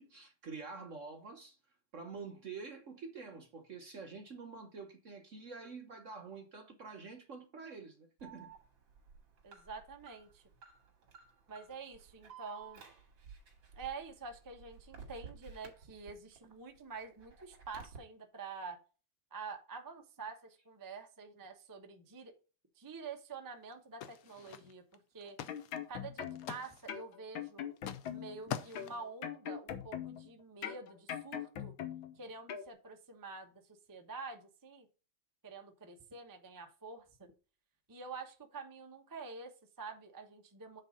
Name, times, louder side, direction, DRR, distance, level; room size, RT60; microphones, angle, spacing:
voice 1, 0.0-1.6 1.9-8.5, right 4 dB, 50° right, 1.1 m, -47 dB
Alarm, 8.2-16.4 16.7-18.0, right 6 dB, 75° right, 2.7 m, -54 dB
voice 2, 9.4-10.4 11.5-12.8 13.7-18.8 19.3-22.3 22.8-25.4 25.9-27.7 28.1-31.7 32.2-33.5 33.9-34.9 35.4-37.3 37.9-40.8, right 4 dB, 15° right, 0.7 m, -47 dB
sound 1, 23.7-23.8 24.0-24.9 25.2-25.8 26.1-27.0 27.8-28.1 28.5-29.1, left 10 dB, 65° left, 0.9 m, -44 dB
sound 2, 25.3-26.5 26.9-28.4 28.7-30.3 30.6-32.1 32.5-32.7, left 9 dB, 85° left, 1.8 m, -42 dB
8.2 x 4.0 x 5.0 m
omnidirectional pair, 2.1 m